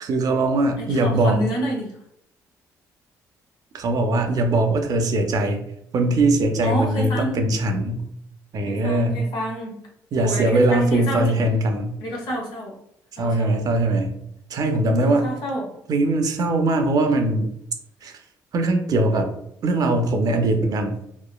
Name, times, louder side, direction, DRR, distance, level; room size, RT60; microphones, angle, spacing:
voice 1, 0.0-1.4 3.7-5.6 5.9-8.0 8.5-9.2 10.1-11.9 13.2-14.1 14.5-15.3 15.9-17.5 18.0-18.1 18.5-19.3 19.6-21.0, right 2 dB, 55° right, 5 dB, 0.5 m, -21 dB
voice 2, 0.8-1.9 6.6-7.4 8.7-9.8 10.2-11.4 12.0-12.8 13.2-13.6 15.0-15.7, equal, 80° left, -2 dB, 1.0 m, -28 dB
3.0 x 2.1 x 2.3 m, 0.73 s
supercardioid pair, 75°, 8 cm